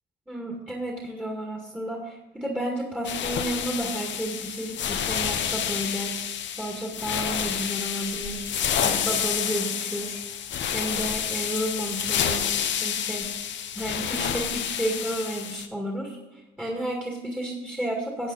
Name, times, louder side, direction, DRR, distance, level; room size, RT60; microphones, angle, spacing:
voice 1, 0.3-6.3 6.6-8.5 8.8-10.2 10.7-13.3 13.8-18.3, right 1 dB, 5° right, -2 dB, 2.1 m, -32 dB
sound 1, 3.0-15.7, left 9 dB, 65° left, 1.0 m, -29 dB
13.5 x 8.1 x 4.1 m, 1.1 s
cardioid pair, 90°, 20 cm